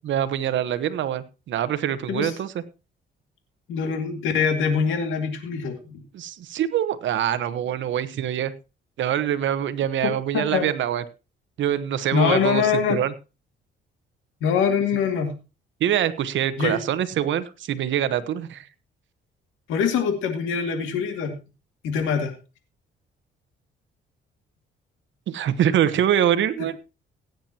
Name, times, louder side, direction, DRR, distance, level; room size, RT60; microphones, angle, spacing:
voice 1, 0.0-2.5 6.1-8.5 9.0-11.0 11.6-13.1 15.8-18.6 25.3-26.8, right 10 dB, 70° right, 13 dB, 1.1 m, -24 dB
voice 2, 3.7-6.0 10.0-10.7 12.1-13.0 14.4-15.3 16.6-16.8 19.7-21.3 21.8-22.3, left 6 dB, 90° left, 5 dB, 2.2 m, -24 dB
17.0 x 9.2 x 2.9 m, 0.30 s
cardioid pair, 90°, 20 cm